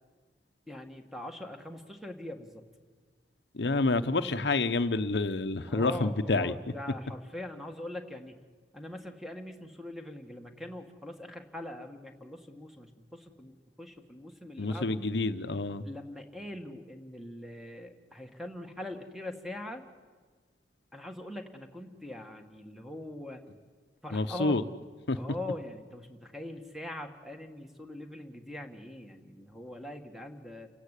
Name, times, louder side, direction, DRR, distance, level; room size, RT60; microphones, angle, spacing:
voice 1, 0.7-2.6 5.7-8.4 8.7-15.0 15.8-19.8 20.9-23.4 24.0-24.6 25.2-30.7, left 1 dB, ahead, 5 dB, 1.6 m, -42 dB
voice 2, 3.5-6.5 14.6-15.8 24.1-24.6 25.1-25.2, left 3 dB, 75° left, 10 dB, 0.8 m, -28 dB
29.0 x 16.5 x 8.3 m, 1.5 s
head